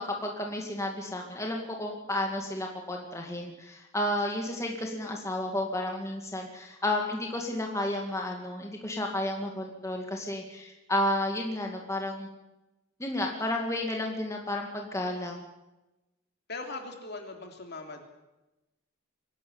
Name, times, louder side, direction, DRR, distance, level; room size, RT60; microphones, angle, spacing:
voice 1, 0.0-12.3 13.0-15.4, left 1 dB, 15° left, 1 dB, 2.2 m, -32 dB
voice 2, 16.5-18.0, left 3 dB, 55° left, 3 dB, 3.3 m, -40 dB
24.0 x 11.5 x 9.6 m, 1.0 s
head